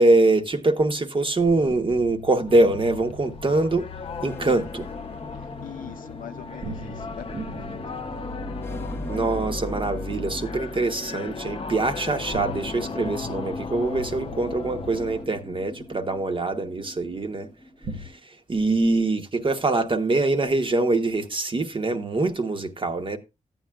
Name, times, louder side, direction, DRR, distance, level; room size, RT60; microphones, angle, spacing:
voice 1, 0.0-3.9 4.2-4.9 9.0-17.5 17.9-23.2, right 2 dB, 40° right, 1.0 m, -23 dB
sound 1, 1.4-5.8 6.6-11.7 12.2-16.9 17.8-18.1, right 1 dB, 65° right, 1.0 m, -41 dB
sound 2, 2.5-15.3, left 4 dB, 45° left, 0.6 m, -36 dB
sound 3, 4.2-18.2, left 1 dB, 15° left, 0.9 m, -41 dB
voice 2, 5.3-7.8, left 9 dB, 80° left, 0.6 m, -42 dB
13.5 x 8.8 x 2.3 m
cardioid pair, 70°, 14 cm